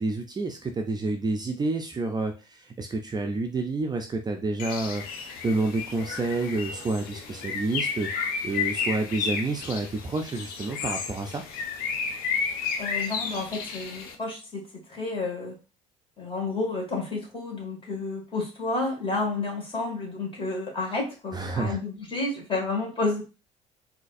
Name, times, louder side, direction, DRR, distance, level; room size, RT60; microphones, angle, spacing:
voice 1, 0.0-5.0 5.4-8.1 8.4-11.4 21.3-21.8, right 3 dB, 25° right, 4 dB, 0.6 m, -29 dB
Bird, 4.6-14.2, left 5 dB, 60° left, 0.7 m, -32 dB
voice 2, 12.8-15.6 16.2-23.2, left 3 dB, 30° left, 0 dB, 1.9 m, -30 dB
3.9 x 2.8 x 2.5 m, 0.30 s
hypercardioid pair, 55°, 17 cm